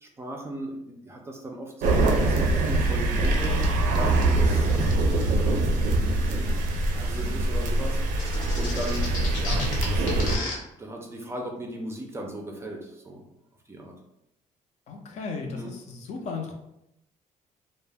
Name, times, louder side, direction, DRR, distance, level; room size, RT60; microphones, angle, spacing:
voice 1, 0.0-3.6 3.9-5.6 6.9-8.0 8.5-10.0 10.8-13.2 13.7-13.9 15.5-15.7, right 1 dB, 20° right, 1 dB, 0.4 m, -37 dB
sound 1, 1.8-10.4, right 2 dB, 90° right, 0.4 m, -23 dB
sound 2, 8.2-10.5, left 3 dB, 80° left, 1.0 m, -33 dB
voice 2, 14.9-16.5, left 4 dB, 55° left, 2 dB, 0.5 m, -35 dB
2.2 x 2.0 x 3.3 m, 0.83 s
cardioid pair, 135°, 14 cm